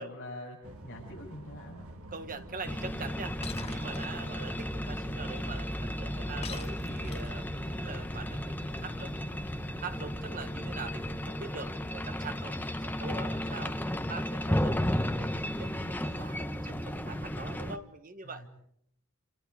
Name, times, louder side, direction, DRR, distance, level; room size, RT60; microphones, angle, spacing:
voice 1, 0.0-1.9 18.2-18.5, left 1 dB, 50° left, -5 dB, 7.1 m, -45 dB
sound 1, 0.6-17.7, right 1 dB, 70° right, 2.3 m, -49 dB
voice 2, 2.1-18.5, right 4 dB, 40° right, 9 dB, 1.4 m, -44 dB
sound 2, 2.7-17.8, equal, 10° left, 1.0 m, -34 dB
Shatter, 3.4-4.0 6.4-7.5, left 6 dB, 30° left, 1.4 m, -43 dB
29.0 x 28.5 x 4.8 m, 0.69 s
head